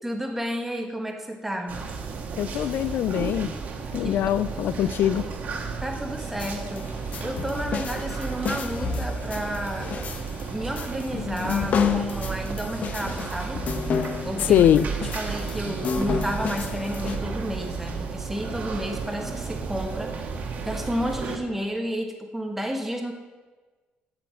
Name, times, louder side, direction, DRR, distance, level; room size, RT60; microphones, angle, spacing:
voice 1, 0.0-1.8 4.0-4.3 5.8-6.9 7.2-10.0 10.5-13.6 14.2-14.7 15.1-20.1 20.6-23.1, equal, 5° right, 3 dB, 1.3 m, -31 dB
sound 1, 1.7-21.4, right 5 dB, 50° right, 1.4 m, -33 dB
voice 2, 2.4-3.5 3.9-5.3 14.4-14.8, left 11 dB, 65° left, 15 dB, 0.3 m, -22 dB
sound 2, 6.2-17.2, left 6 dB, 45° left, 0.9 m, -30 dB
9.1 x 7.0 x 8.1 m, 1.3 s
cardioid pair, 150°, 4 cm